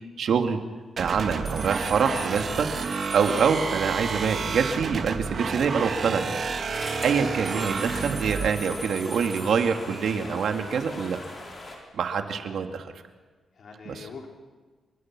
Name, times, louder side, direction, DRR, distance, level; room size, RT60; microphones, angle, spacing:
voice 1, 0.2-0.6 1.0-6.3 7.0-11.2 11.9-12.9 13.9-14.1, right 6 dB, 70° right, 5 dB, 2.2 m, -25 dB
sound 1, 1.0-8.5, right 5 dB, 50° right, 2.5 m, -30 dB
sound 2, 1.5-4.4 7.5-10.3, right 3 dB, 25° right, 1.8 m, -42 dB
sound 3, 6.7-11.8, left 2 dB, 35° left, 6.0 m, -41 dB
voice 2, 7.6-7.9 13.6-14.3, left 5 dB, 60° left, 0 dB, 5.0 m, -44 dB
29.5 x 24.0 x 6.1 m, 1.4 s
wide cardioid pair, 125°, 0 cm